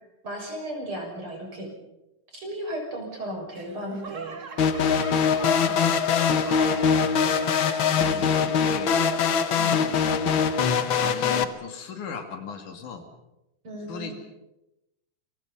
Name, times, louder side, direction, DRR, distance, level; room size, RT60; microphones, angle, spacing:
voice 1, 0.2-1.7 2.3-4.4 5.4-6.1 8.0-8.3 9.5-9.8 13.6-14.1, right 1 dB, 40° right, 1 dB, 7.2 m, -36 dB
Laughter / Clapping / Crowd, 3.5-8.3 8.7-9.2 9.8-9.9, right 5 dB, 60° right, 0.8 m, -42 dB
sound 1, 4.6-11.4, left 6 dB, 55° left, 1.5 m, -22 dB
voice 2, 7.5-9.0 9.8-10.0 11.0-13.0 13.9-14.1, left 6 dB, 80° left, 5 dB, 4.0 m, -38 dB
29.0 x 24.0 x 5.6 m, 0.92 s
omnidirectional pair, 3.6 m